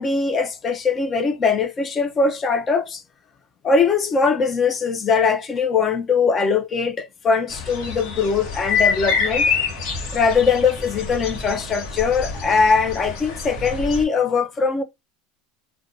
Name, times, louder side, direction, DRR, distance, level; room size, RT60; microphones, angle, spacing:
voice 1, 0.0-3.0 3.6-9.5 10.1-14.8, left 5 dB, 30° left, 0.4 m, -21 dB
sound 1, 7.5-14.0, left 5 dB, 65° left, 0.9 m, -26 dB
2.5 x 2.2 x 2.6 m
supercardioid pair, 130°, 0 cm